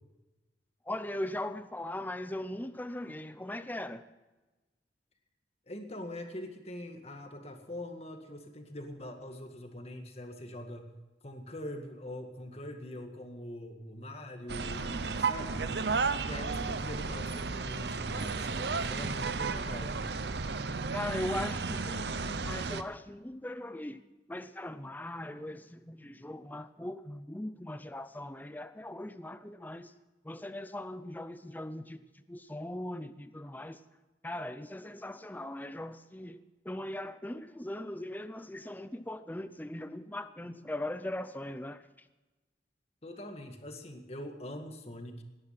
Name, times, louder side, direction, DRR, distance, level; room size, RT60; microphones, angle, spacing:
voice 1, 0.9-4.1 16.7-16.8 20.9-24.0 24.3-29.9 30.2-32.0 32.3-33.8 34.2-41.8, left 1 dB, 10° left, 0.6 m, -39 dB
voice 2, 5.7-10.9 11.2-15.7 16.2-20.0 43.0-45.2, left 1 dB, 35° left, 1.9 m, -43 dB
sound 1, 14.5-22.8, right 4 dB, 70° right, 0.8 m, -33 dB
18.0 x 11.0 x 5.8 m
head